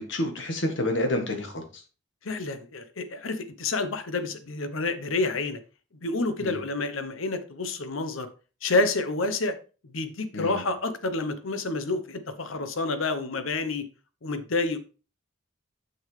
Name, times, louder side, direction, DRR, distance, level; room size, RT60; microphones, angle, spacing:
voice 1, 0.1-1.8 6.4-6.6 10.3-10.6, left 1 dB, 65° left, 4 dB, 1.6 m, -29 dB
voice 2, 2.2-5.6 6.0-8.3 8.6-9.6 9.8-13.9 14.2-14.8, left 3 dB, 90° left, 10 dB, 0.9 m, -29 dB
7.1 x 6.4 x 3.3 m, 0.34 s
head